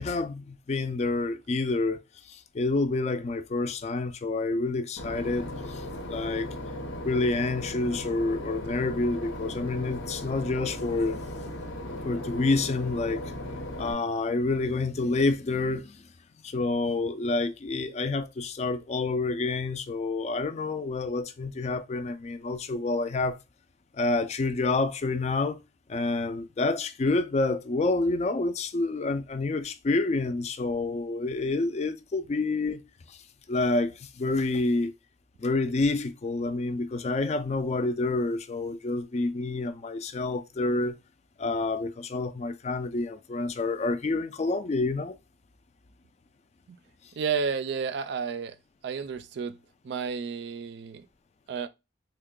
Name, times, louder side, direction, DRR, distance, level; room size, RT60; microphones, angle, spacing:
voice 1, 0.0-6.5 7.0-11.2 12.0-16.0 16.4-23.4 23.9-25.6 25.9-32.8 33.1-33.2 33.5-34.9 35.4-40.9 41.4-45.1, left 3 dB, 35° left, 0.3 m, -28 dB
Boat Water vehicle / Engine, 5.0-13.9, left 1 dB, 85° left, 0.8 m, -37 dB
voice 2, 47.1-48.6 48.8-49.6 49.8-51.1 51.5-51.7, right 6 dB, 55° right, 0.3 m, -31 dB
3.5 x 2.1 x 3.7 m
head